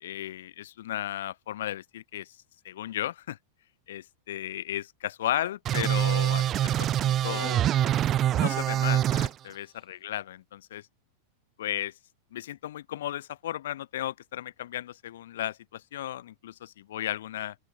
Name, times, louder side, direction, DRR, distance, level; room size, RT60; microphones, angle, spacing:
voice 1, 0.0-2.4 2.6-3.4 3.9-7.8 8.3-10.8 11.6-11.9 12.3-17.6, left 12 dB, 60° left, 0.4 m, -35 dB
sound 1, 5.7-9.3, right 12 dB, 30° right, 0.5 m, -25 dB
open air
figure-of-eight pair, 90°, 0 cm